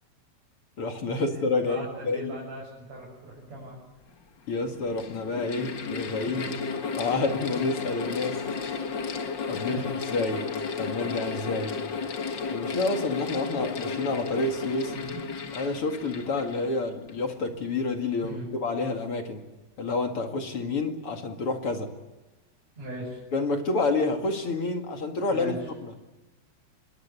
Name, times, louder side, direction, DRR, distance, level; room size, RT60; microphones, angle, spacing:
voice 1, 0.8-2.3 4.5-6.6 7.0-8.4 9.5-9.8 10.1-10.5 10.8-11.8 12.5-14.9 15.5-19.4 19.8-21.9 23.3-25.5, left 3 dB, 40° left, 4 dB, 2.3 m, -29 dB
voice 2, 1.6-3.8 6.2-6.5 8.3-8.8 9.7-9.9 14.9-15.2 18.2-18.5 22.8-23.2 25.3-25.7, right 1 dB, 40° right, -4 dB, 7.5 m, -39 dB
Mechanical fan, 3.7-3.8 4.6-17.3, left 5 dB, 60° left, 1.2 m, -33 dB
26.0 x 22.0 x 8.3 m, 1.1 s
omnidirectional pair, 4.7 m